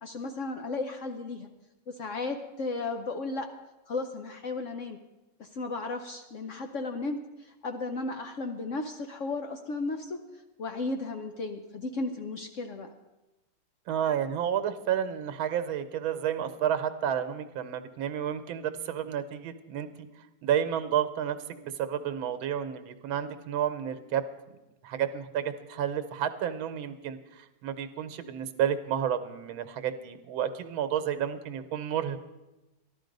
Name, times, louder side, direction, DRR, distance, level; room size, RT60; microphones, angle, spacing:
voice 1, 0.0-1.5 1.9-3.5 3.9-5.0 5.4-10.2 10.6-12.9, left 3 dB, 70° left, 6 dB, 0.7 m, -34 dB
voice 2, 13.9-19.9 20.4-24.2 24.8-32.2, right 9 dB, 90° right, 10 dB, 1.6 m, -31 dB
13.5 x 12.0 x 5.2 m, 1.0 s
omnidirectional pair, 2.2 m